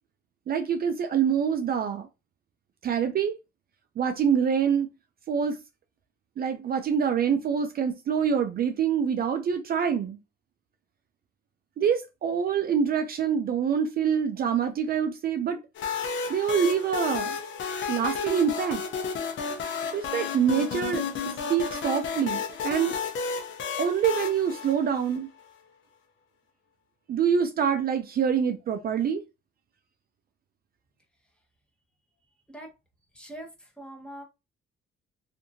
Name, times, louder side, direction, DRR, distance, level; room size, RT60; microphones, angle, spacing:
voice 1, 0.5-2.1 2.8-3.4 4.0-4.9 5.3-5.6 6.4-10.2 11.8-15.6 16.3-17.4 17.9-18.8 19.9-21.0 21.5-22.9 23.8-25.3 27.1-29.2, right 7 dB, 50° right, 0.4 m, -25 dB
sound 1, 15.8-25.4, left 6 dB, 70° left, 0.7 m, -32 dB
voice 2, 33.1-33.5 33.8-34.2, right 1 dB, 5° left, 1.0 m, -41 dB
2.7 x 2.5 x 2.6 m
cardioid pair, 90°, 20 cm